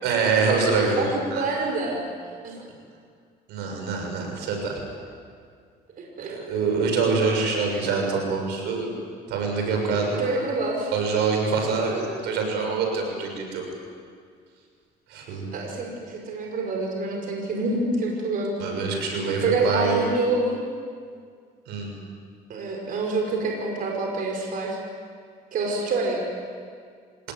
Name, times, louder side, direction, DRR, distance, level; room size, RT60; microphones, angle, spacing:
voice 1, 0.0-1.0 1.3-1.4 3.5-4.8 6.3-8.9 9.3-10.2 10.9-13.7 15.1-15.5 18.6-20.1 21.7-21.9, right 4 dB, 85° right, 2 dB, 6.7 m, -25 dB
voice 2, 1.0-2.0 2.4-2.6 6.0-6.3 10.1-10.9 15.5-18.5 19.4-20.7 22.5-24.8 25.5-26.2, right 3 dB, 55° right, 1 dB, 5.3 m, -26 dB
26.0 x 19.5 x 9.5 m, 2.1 s
cardioid pair, 110°, 17 cm